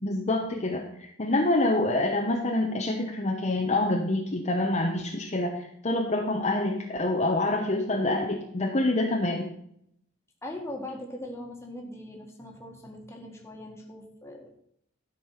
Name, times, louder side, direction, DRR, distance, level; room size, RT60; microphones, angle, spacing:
voice 1, 0.0-9.5, left 2 dB, 35° left, 1 dB, 0.9 m, -26 dB
voice 2, 10.4-14.6, left 1 dB, 15° left, 1 dB, 1.7 m, -40 dB
12.5 x 5.5 x 5.7 m, 0.71 s
head